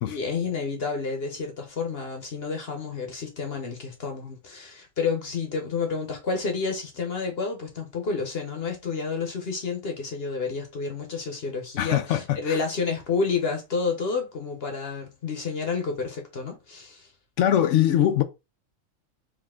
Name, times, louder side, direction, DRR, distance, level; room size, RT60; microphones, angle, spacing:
voice 1, 0.0-17.1, left 4 dB, 50° left, 1.1 m, -30 dB
voice 2, 11.8-12.6 17.4-18.2, left 11 dB, 70° left, 0.9 m, -22 dB
4.9 x 2.7 x 3.6 m
omnidirectional pair, 1.4 m